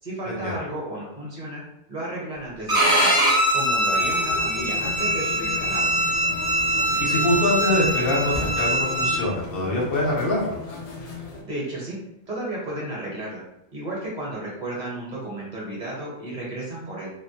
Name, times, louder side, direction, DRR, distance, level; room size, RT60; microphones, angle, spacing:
voice 1, 0.0-1.6 1.9-3.1 3.5-6.0 11.4-12.0 12.3-13.4 13.7-17.1, right 1 dB, 45° right, -5 dB, 0.8 m, -33 dB
Bowed string instrument, 2.7-9.2, right 1 dB, 30° right, 0.4 m, -22 dB
sound 1, 3.9-11.4, left 3 dB, 50° left, 0.5 m, -36 dB
voice 2, 7.0-10.6, left 1 dB, 70° left, -3 dB, 0.9 m, -24 dB
2.2 x 2.0 x 2.7 m, 0.83 s
omnidirectional pair, 1.1 m